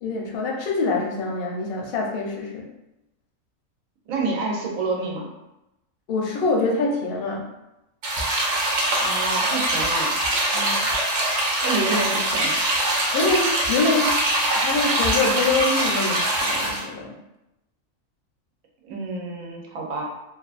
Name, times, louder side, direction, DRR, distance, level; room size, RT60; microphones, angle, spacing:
voice 1, 0.0-2.7 6.1-7.4 10.5-10.7 13.1-14.1 14.5-17.1, left 3 dB, 60° left, -1 dB, 0.6 m, -25 dB
voice 2, 4.1-5.3 9.0-10.1 11.6-12.6 18.8-20.0, right 3 dB, 90° right, 0 dB, 1.0 m, -28 dB
sound 1, 8.0-16.8, right 1 dB, 60° right, 0.4 m, -23 dB
2.6 x 2.3 x 2.4 m, 0.93 s
omnidirectional pair, 1.4 m